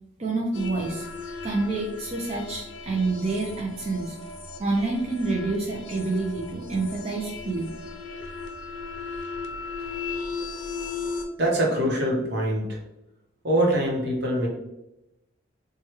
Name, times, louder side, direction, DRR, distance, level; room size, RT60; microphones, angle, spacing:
voice 1, 0.2-1.1 1.4-4.2 4.6-7.7, right 3 dB, 30° right, -2 dB, 0.4 m, -28 dB
sound 1, 0.5-11.3, left 4 dB, 70° left, 0.5 m, -37 dB
voice 2, 11.4-12.8 13.4-14.5, right 1 dB, 60° right, -2 dB, 0.9 m, -24 dB
3.2 x 2.3 x 2.9 m, 0.92 s
head